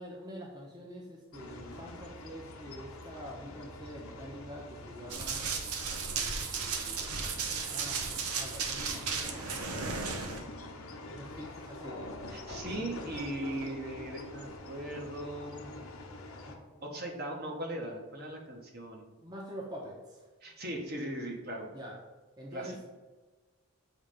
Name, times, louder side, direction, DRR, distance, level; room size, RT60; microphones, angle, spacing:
voice 1, 0.0-5.4 6.1-10.0 10.8-12.1 12.7-13.0 16.4-16.9 19.2-20.3 21.7-22.0 22.4-22.8, equal, 20° right, -2 dB, 0.8 m, -46 dB
sound 1, 1.3-16.6, left 1 dB, 75° left, 0.9 m, -45 dB
Run, 5.1-10.4, right 5 dB, 90° right, 0.8 m, -35 dB
voice 2, 12.3-15.7 16.8-19.1 20.4-21.7 22.5-22.7, right 1 dB, 45° right, 1 dB, 1.1 m, -39 dB
7.2 x 3.2 x 5.0 m, 1.3 s
head